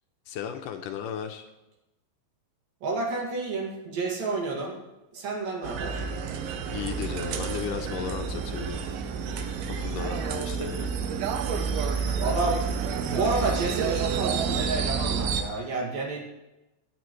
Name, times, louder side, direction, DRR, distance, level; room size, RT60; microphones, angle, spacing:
voice 1, 0.3-1.5 6.7-8.8 9.8-10.9, left 9 dB, 75° left, 5 dB, 2.2 m, -35 dB
voice 2, 2.8-4.8 5.1-6.0 12.2-12.6 13.0-16.2, right 3 dB, 70° right, -1 dB, 3.9 m, -30 dB
sound 1, 5.6-15.4, right 6 dB, 85° right, 2.9 m, -29 dB
24.5 x 9.6 x 3.2 m, 1.0 s
omnidirectional pair, 4.3 m